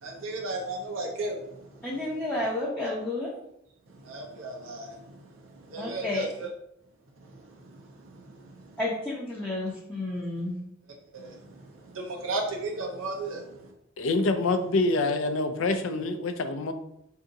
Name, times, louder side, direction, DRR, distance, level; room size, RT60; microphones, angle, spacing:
voice 1, 0.0-1.8 3.9-6.5 7.2-7.8 8.1-8.7 11.1-13.7, right 2 dB, 90° right, 0 dB, 0.6 m, -36 dB
voice 2, 1.8-3.3 5.8-6.3 8.8-10.6, left 2 dB, 5° left, -7 dB, 0.5 m, -31 dB
voice 3, 14.0-16.7, left 2 dB, 80° left, 8 dB, 0.4 m, -26 dB
3.6 x 2.7 x 2.6 m, 0.79 s
head